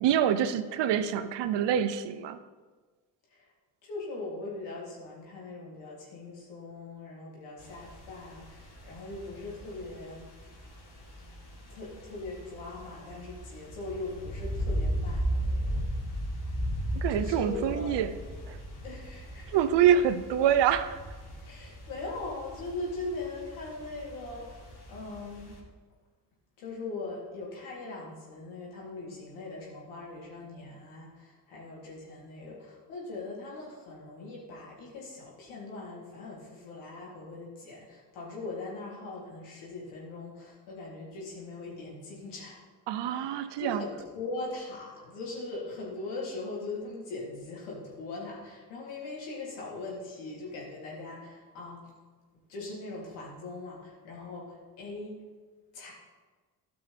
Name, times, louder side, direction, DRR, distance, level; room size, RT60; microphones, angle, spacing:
voice 1, 0.0-2.4 16.9-18.1 18.5-18.6 19.5-21.0 42.9-43.8, right 9 dB, 60° right, 12 dB, 0.8 m, -26 dB
voice 2, 3.8-10.3 11.7-15.9 17.1-18.0 18.8-19.6 21.4-25.5 26.6-42.6 43.0-51.9 52.5-55.2 55.7-55.9, left 2 dB, 70° left, -4 dB, 3.3 m, -40 dB
sound 1, 7.6-25.6, equal, 55° left, 3.4 m, -37 dB
17.0 x 6.0 x 3.5 m, 1.4 s
hypercardioid pair, 45°, 49 cm